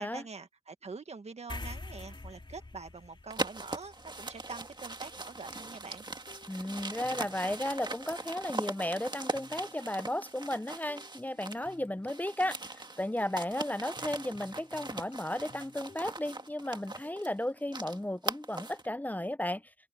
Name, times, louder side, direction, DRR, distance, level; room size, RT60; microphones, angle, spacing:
voice 1, 0.0-6.1, right 4 dB, 85° right, 1.8 m, -45 dB
sound 1, 1.5-8.3, left 2 dB, 50° left, 2.9 m, -48 dB
sound 2, 3.3-11.7 12.0-18.9, right 2 dB, 45° right, 1.9 m, -40 dB
sound 3, 5.1-17.4, left 3 dB, 70° left, 3.4 m, -58 dB
voice 2, 6.5-12.6 13.0-19.6, left 1 dB, 15° left, 0.7 m, -34 dB
cardioid pair, 45°, 11 cm